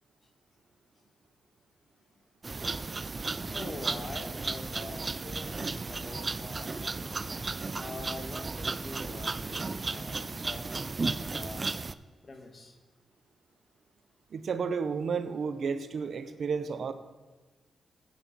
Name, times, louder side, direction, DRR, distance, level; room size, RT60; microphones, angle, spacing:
sound 1, 2.4-11.9, right 3 dB, 35° right, 0.5 m, -34 dB
voice 1, 3.5-7.3 7.8-10.7 11.0-11.7 12.2-12.7, left 3 dB, 45° left, 5 dB, 1.7 m, -44 dB
voice 2, 14.3-16.9, right 5 dB, 65° right, 10 dB, 0.8 m, -32 dB
15.0 x 9.2 x 4.2 m, 1.3 s
cardioid pair, 80°, 0 cm